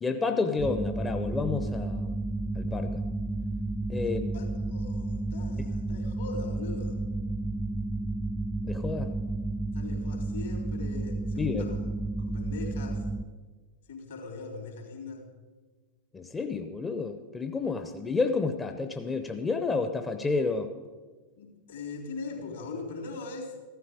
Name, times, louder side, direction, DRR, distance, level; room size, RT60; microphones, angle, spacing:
voice 1, 0.0-2.2 2.6-3.0 3.9-4.3 8.6-9.1 11.4-11.7 16.1-20.7, left 4 dB, 15° left, 7 dB, 0.7 m, -30 dB
sound 1, 0.6-13.2, right 2 dB, 10° right, 0.4 m, -32 dB
voice 2, 4.0-7.0 9.7-11.9 12.2-13.0 13.9-15.3 21.4-23.5, left 4 dB, 65° left, 1 dB, 3.4 m, -41 dB
15.0 x 12.5 x 5.1 m, 1.4 s
figure-of-eight pair, 90°, 0 cm